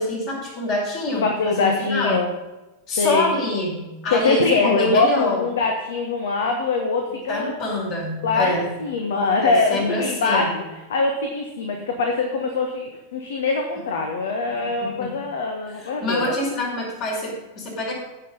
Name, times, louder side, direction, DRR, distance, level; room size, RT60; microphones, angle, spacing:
voice 1, 0.0-2.2 2.9-5.4 7.3-8.7 9.4-10.5 14.5-15.2 15.7-17.9, left 2 dB, 40° left, -2 dB, 4.6 m, -26 dB
voice 2, 1.2-2.3 3.0-3.3 4.1-7.5 8.2-10.6 10.9-16.3, left 3 dB, 60° left, 3 dB, 1.4 m, -23 dB
15.5 x 6.1 x 5.3 m, 1.1 s
figure-of-eight pair, 90°, 0 cm